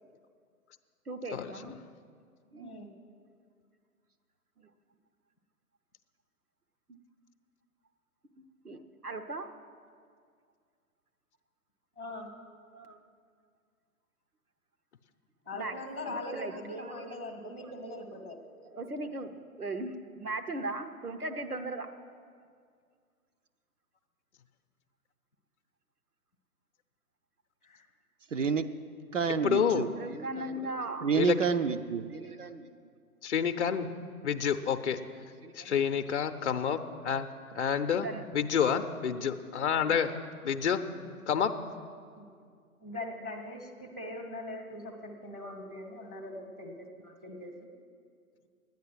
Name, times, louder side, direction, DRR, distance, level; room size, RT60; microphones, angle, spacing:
voice 1, 1.1-1.8 2.5-2.7 4.6-4.7 6.9-7.0 8.6-9.5 12.7-13.0 15.5-15.8 16.1-18.0 18.6-21.9 29.9-31.1 32.1-32.7 35.4-35.8 37.9-38.2, right 2 dB, 85° right, 6 dB, 1.1 m, -39 dB
voice 2, 2.6-2.9 12.0-12.3 15.4-18.4 27.6-27.8 39.8-40.2 42.2-42.3 42.8-47.5, left 1 dB, 10° right, -12 dB, 0.4 m, -41 dB
voice 3, 28.3-28.7 29.1-29.9 31.0-32.1, right 6 dB, 55° right, 9 dB, 0.6 m, -28 dB
voice 4, 29.4-29.9 31.2-31.4 33.2-33.9 34.2-35.0 35.6-38.1 38.3-40.1 40.4-40.8 41.3-41.5, left 7 dB, 50° left, 10 dB, 0.6 m, -28 dB
11.0 x 9.3 x 7.6 m, 2.1 s
figure-of-eight pair, 125°, 44 cm